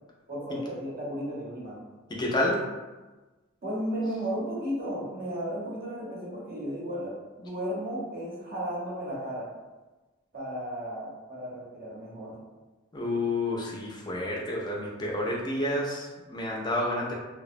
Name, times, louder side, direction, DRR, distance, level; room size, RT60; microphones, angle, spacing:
voice 1, 0.3-1.8 3.6-9.5 10.3-12.5, equal, 45° right, -5 dB, 0.8 m, -34 dB
voice 2, 2.1-2.6 12.9-17.1, left 1 dB, 20° left, -2 dB, 0.4 m, -29 dB
2.7 x 2.0 x 2.5 m, 1.2 s
head